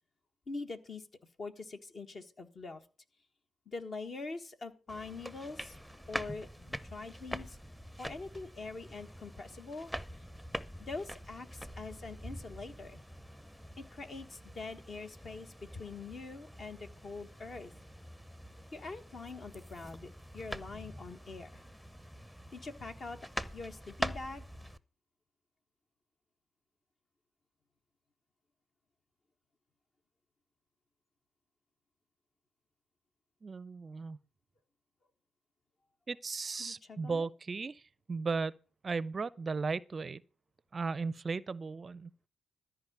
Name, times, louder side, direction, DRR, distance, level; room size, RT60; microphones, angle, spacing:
voice 1, 0.5-1.1 1.4-2.8 3.7-5.8 6.1-7.6 8.0-9.9 10.8-13.0 13.8-17.7 18.7-21.6 22.5-23.2 23.5-24.4 36.6-37.3, left 3 dB, 50° left, 1.5 m, -44 dB
sound 1, 4.9-24.8, equal, 5° left, 0.8 m, -45 dB
voice 2, 33.4-34.2 36.1-37.8 38.1-38.5 38.8-40.2 40.7-42.1, right 4 dB, 40° right, 0.4 m, -36 dB
13.5 x 5.0 x 8.0 m
hypercardioid pair, 40°, 0 cm